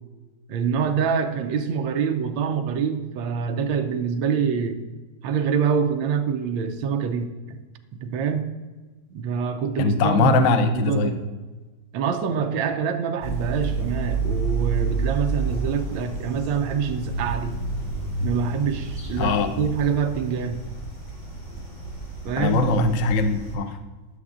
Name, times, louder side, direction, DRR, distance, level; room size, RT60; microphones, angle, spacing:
voice 1, 0.5-4.8 5.2-7.6 7.9-8.5 9.1-11.2 11.9-17.6 18.2-20.6 22.2-22.6, right 6 dB, 75° right, 5 dB, 1.3 m, -25 dB
voice 2, 9.8-11.1 19.2-19.5 22.4-23.8, left 3 dB, 85° left, 7 dB, 0.7 m, -21 dB
sound 1, 13.2-23.6, right 3 dB, 30° left, 2.5 m, -30 dB
11.5 x 6.9 x 2.5 m, 1.2 s
omnidirectional pair, 2.3 m